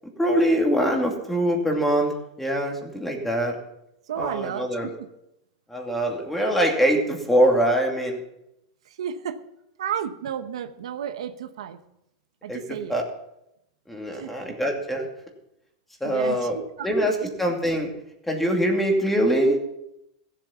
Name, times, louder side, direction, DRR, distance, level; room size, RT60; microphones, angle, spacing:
voice 1, 0.2-2.1 2.4-3.6 4.2-4.9 5.7-8.2 12.5-13.0 13.9-15.1 16.0-16.6 16.8-17.9 18.2-19.6, equal, 5° left, 1 dB, 2.5 m, -23 dB
voice 2, 4.1-4.9 8.9-9.4 9.8-11.8 12.4-13.0 14.1-14.3 16.0-17.3, right 9 dB, 85° right, 9 dB, 1.0 m, -32 dB
16.0 x 7.7 x 5.7 m, 0.83 s
supercardioid pair, 135°, 3 cm